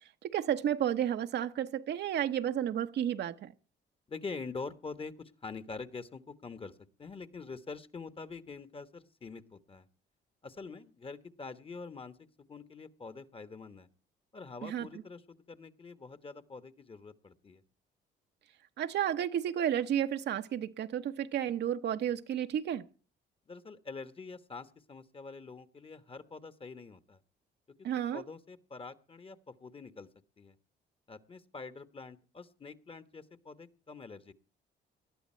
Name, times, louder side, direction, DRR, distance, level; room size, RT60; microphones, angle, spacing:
voice 1, 0.2-3.5 14.6-14.9 18.8-22.8 27.8-28.2, right 10 dB, 70° right, 0.9 m, -32 dB
voice 2, 4.1-9.9 10.4-12.2 12.5-13.9 14.3-17.6 23.5-27.2 28.1-30.1 30.4-30.6 31.1-34.3, left 4 dB, 30° left, 1.2 m, -45 dB
19.0 x 12.0 x 4.4 m
cardioid pair, 90°, 19 cm